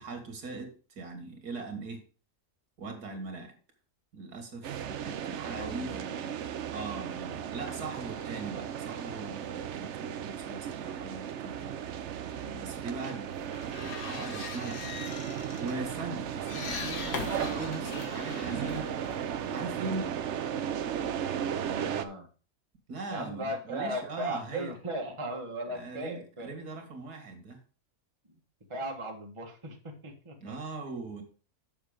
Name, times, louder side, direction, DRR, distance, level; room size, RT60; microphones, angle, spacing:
voice 1, 0.0-2.0 2.8-3.6 4.1-6.0 6.7-11.8 12.6-13.3 13.8-14.8 15.6-18.9 19.5-20.1 22.9-24.7 25.7-27.6 30.4-31.2, right 3 dB, 80° right, 5 dB, 2.4 m, -40 dB
sound 1, 4.6-22.1, right 9 dB, 60° right, 0.8 m, -36 dB
voice 2, 5.5-6.3 12.4-12.7 21.6-22.3 23.1-26.6 28.7-30.6, right 1 dB, 20° right, 2 dB, 1.5 m, -37 dB
sound 2, 13.3-19.8, left 5 dB, 85° left, 1.9 m, -41 dB
7.1 x 6.8 x 5.1 m, 0.37 s
omnidirectional pair, 1.7 m